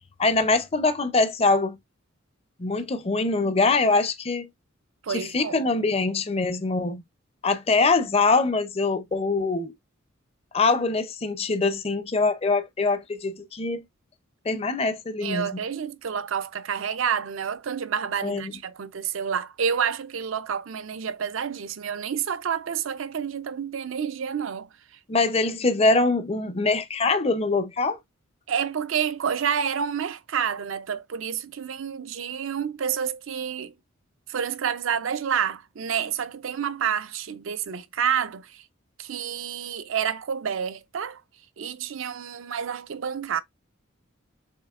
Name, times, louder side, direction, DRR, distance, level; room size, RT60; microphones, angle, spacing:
voice 1, 0.2-1.8 2.6-4.5 5.1-7.0 7.4-9.7 10.5-13.8 14.5-15.5 18.2-18.4 25.1-28.0, left 3 dB, 30° left, 0.5 m, -23 dB
voice 2, 5.0-5.6 15.2-24.7 28.5-33.7 34.3-38.6 39.0-41.2 41.6-43.4, right 7 dB, 80° right, 0.5 m, -29 dB
6.6 x 2.9 x 2.4 m
head